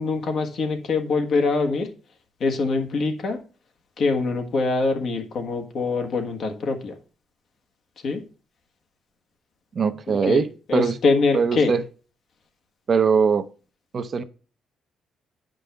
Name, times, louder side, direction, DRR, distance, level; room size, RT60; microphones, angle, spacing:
voice 1, 0.0-1.9 2.4-3.4 4.0-6.9 8.0-8.2 10.1-10.4 10.7-11.7, left 3 dB, 60° left, 1.4 m, -24 dB
voice 2, 9.7-11.0 11.3-11.8 12.9-13.5 13.9-14.2, right 5 dB, 45° right, 0.6 m, -21 dB
8.9 x 5.3 x 3.4 m
cardioid pair, 90°, 0 cm